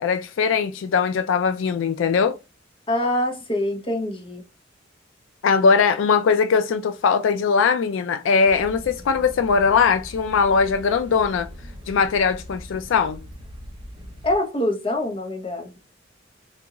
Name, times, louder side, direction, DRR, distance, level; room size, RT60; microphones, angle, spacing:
voice 1, 0.0-2.4 5.4-11.5 11.9-13.2, left 5 dB, 75° left, 0.3 m, -20 dB
voice 2, 2.9-4.4 14.2-15.8, left 1 dB, 25° left, 0.7 m, -25 dB
sound 1, 8.4-14.4, equal, 25° right, 0.5 m, -41 dB
3.5 x 2.5 x 2.9 m
head